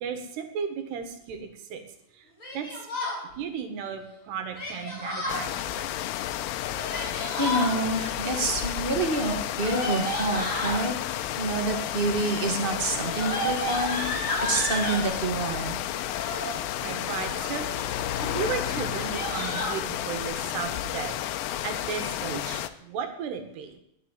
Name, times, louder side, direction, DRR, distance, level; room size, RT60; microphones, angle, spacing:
voice 1, 0.0-1.8 2.5-2.7 3.4-5.9 12.1-12.4 16.8-17.9 18.3-21.2 21.6-23.8, right 7 dB, 80° right, 7 dB, 3.8 m, -35 dB
Yell, 2.4-3.2 4.5-5.4 6.6-7.7 9.0-10.8 11.7-12.1 12.4-15.0 16.0-16.6 17.1-17.6 18.0-18.2 18.4-18.5 18.8-19.8, left 1 dB, 20° left, 5.8 m, -32 dB
sound 1, 5.3-22.7, left 12 dB, 85° left, 2.9 m, -32 dB
voice 2, 7.4-10.9 11.4-14.1 14.4-15.8, right 2 dB, 45° right, 4 dB, 0.6 m, -27 dB
Car, 13.2-21.2, left 9 dB, 70° left, 2.5 m, -39 dB
20.0 x 7.5 x 9.1 m, 0.77 s
omnidirectional pair, 4.8 m